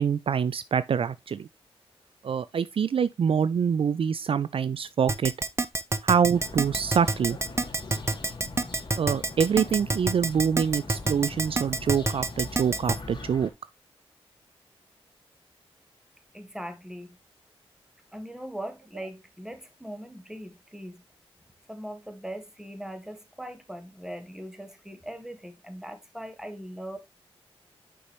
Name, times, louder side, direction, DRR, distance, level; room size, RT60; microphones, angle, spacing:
voice 1, 0.0-1.5 2.2-5.3 6.0-7.4 9.0-13.5, right 7 dB, 60° right, 0.4 m, -25 dB
Keyboard (musical), 5.1-13.0, right 3 dB, 25° right, 0.7 m, -26 dB
sound 1, 6.3-13.5, left 3 dB, 45° left, 2.1 m, -41 dB
voice 2, 16.3-17.2 18.1-21.0 21.7-27.0, equal, 5° right, 1.6 m, -40 dB
6.8 x 5.4 x 3.0 m
cardioid pair, 60°, 10 cm